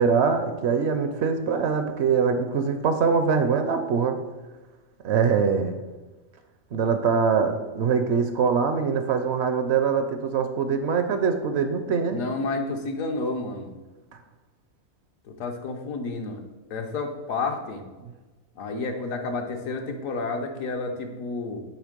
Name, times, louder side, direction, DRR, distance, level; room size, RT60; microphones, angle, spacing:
voice 1, 0.0-4.2 5.0-5.8 6.7-12.2, right 6 dB, 65° right, 8 dB, 0.7 m, -23 dB
voice 2, 12.1-13.7 15.3-16.4 16.7-17.8 18.6-21.6, left 3 dB, 75° left, 4 dB, 1.2 m, -30 dB
8.2 x 3.2 x 5.0 m, 1.2 s
omnidirectional pair, 1.4 m